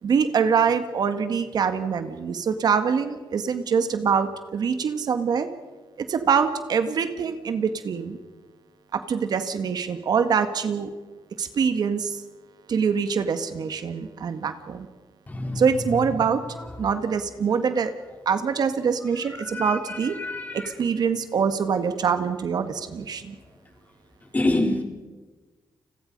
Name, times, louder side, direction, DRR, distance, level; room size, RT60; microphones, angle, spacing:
voice 1, 0.0-5.5 6.0-8.2 8.9-10.9 11.4-12.2 12.7-14.9 15.5-16.4 16.8-17.9 18.2-20.1 20.5-23.3, right 6 dB, 60° right, 9 dB, 1.8 m, -24 dB
voice 2, 15.3-16.3 16.6-16.7 19.0-20.8 24.2-24.8, left 2 dB, 20° left, 3 dB, 4.1 m, -28 dB
30.0 x 21.5 x 5.4 m, 1.3 s
cardioid pair, 115°, 8 cm